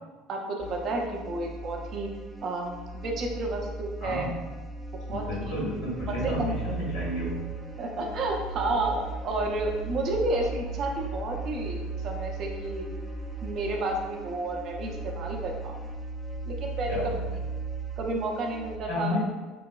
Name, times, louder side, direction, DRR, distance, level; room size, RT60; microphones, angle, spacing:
voice 1, 0.3-2.1 2.4-4.3 5.1-5.2 6.2-6.3 7.8-12.9 13.4-15.7 16.5-16.9 18.0-19.2, right 2 dB, 55° right, 1 dB, 0.6 m, -31 dB
sound 1, 0.6-18.8, right 3 dB, ahead, 0.4 m, -37 dB
voice 2, 4.0-4.3 5.1-7.4 16.9-17.2 18.8-19.3, left 1 dB, 80° left, -5 dB, 1.5 m, -31 dB
3.1 x 2.8 x 2.3 m, 1.2 s
hypercardioid pair, 85°, 0 cm